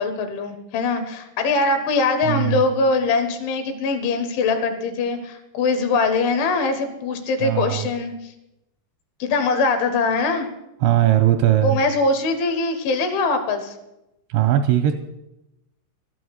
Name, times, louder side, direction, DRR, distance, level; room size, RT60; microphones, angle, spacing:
voice 1, 0.0-8.3 9.2-10.5 11.6-13.8, left 3 dB, 75° left, 8 dB, 3.6 m, -22 dB
voice 2, 2.3-2.6 7.4-7.8 10.8-11.7 14.3-14.9, right 12 dB, 85° right, 6 dB, 2.7 m, -18 dB
13.0 x 8.7 x 8.0 m, 0.89 s
omnidirectional pair, 5.8 m